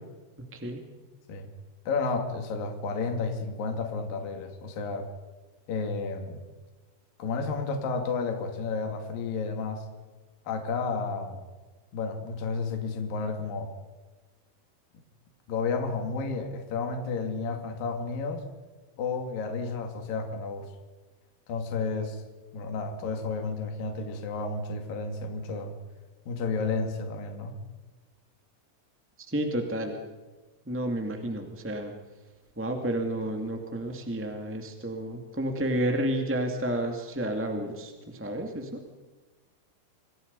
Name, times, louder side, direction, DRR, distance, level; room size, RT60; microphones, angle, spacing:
voice 1, 0.5-0.8 29.3-30.0 30.7-31.9 32.6-38.8, right 1 dB, 5° right, 3 dB, 1.1 m, -31 dB
voice 2, 1.9-5.1 5.7-6.4 7.2-9.8 10.5-11.4 11.9-13.7 15.5-18.4 19.0-20.7 21.5-22.2 22.5-25.7 26.3-27.5, left 4 dB, 60° left, 5 dB, 4.1 m, -31 dB
28.0 x 26.0 x 5.5 m, 1.3 s
omnidirectional pair, 4.7 m